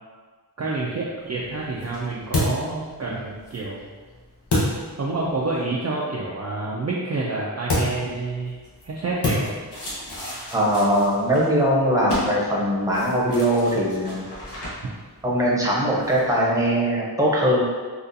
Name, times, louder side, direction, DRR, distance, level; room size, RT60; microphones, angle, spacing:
voice 1, 0.6-3.9 5.0-8.6 8.8-9.5, right 3 dB, 40° right, -5 dB, 0.4 m, -28 dB
sound 1, 1.2-5.6 7.7-16.5, left 1 dB, 80° left, 1.0 m, -31 dB
voice 2, 10.5-14.3 15.2-17.6, equal, 10° right, -5 dB, 0.8 m, -21 dB
3.8 x 2.4 x 2.6 m, 1.5 s
wide cardioid pair, 65°, 40 cm